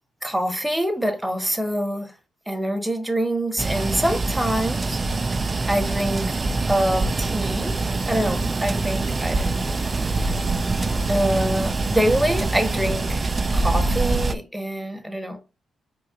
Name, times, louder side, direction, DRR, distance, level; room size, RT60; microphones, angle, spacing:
voice 1, 0.2-2.1 2.5-5.0 5.7-7.7 8.1-9.5 11.1-13.3 13.5-15.4, right 1 dB, 5° right, 1.2 m, -25 dB
sound 1, 3.6-14.4, right 3 dB, 35° right, 0.4 m, -24 dB
sound 2, 7.9-12.9, left 1 dB, 40° left, 2.1 m, -48 dB
4.8 x 3.9 x 2.7 m
supercardioid pair, 65°, 0 cm